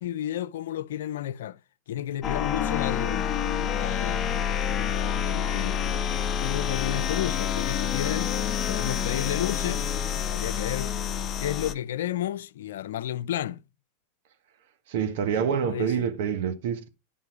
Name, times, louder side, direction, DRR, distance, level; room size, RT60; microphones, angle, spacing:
voice 1, 0.0-1.6 1.9-3.3 3.8-4.7 5.2-5.7 6.4-8.3 8.7-9.9 10.3-10.9 11.4-13.6 15.4-16.1, left 11 dB, 75° left, 0.5 m, -32 dB
sound 1, 2.2-11.7, left 8 dB, 35° left, 0.7 m, -28 dB
voice 2, 14.9-16.9, right 7 dB, 65° right, 1.4 m, -27 dB
9.8 x 5.6 x 4.7 m
hypercardioid pair, 105°, 0 cm